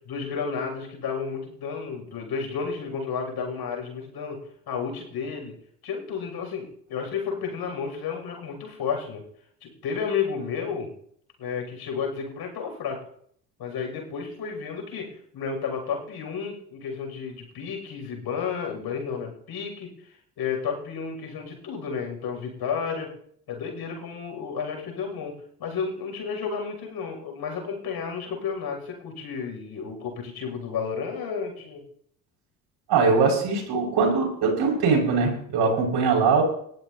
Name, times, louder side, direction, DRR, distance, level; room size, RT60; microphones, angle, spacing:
voice 1, 0.0-5.5 5.8-9.2 9.6-10.9 11.4-13.0 13.6-23.1 23.5-31.8, left 6 dB, 55° left, 2 dB, 6.7 m, -32 dB
voice 2, 32.9-36.4, right 4 dB, 60° right, 1 dB, 5.8 m, -21 dB
20.0 x 15.0 x 2.8 m, 0.66 s
hypercardioid pair, 65°, 46 cm